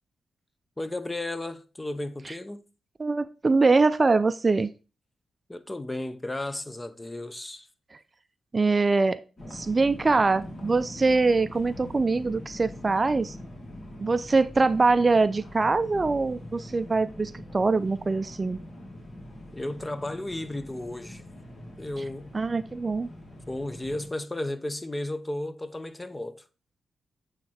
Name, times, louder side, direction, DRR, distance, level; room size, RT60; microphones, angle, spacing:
voice 1, 0.8-2.6 5.5-7.7 19.5-21.2 21.8-22.3 23.5-26.4, left 1 dB, 20° left, 0.7 m, -34 dB
voice 2, 3.0-4.7 8.5-9.2 9.5-13.3 14.0-18.6 22.0-22.1 22.3-23.1, right 3 dB, 40° right, 0.4 m, -23 dB
sound 1, 9.4-24.1, left 1 dB, 50° left, 2.4 m, -43 dB
8.0 x 3.2 x 4.3 m
supercardioid pair, 45°, 0 cm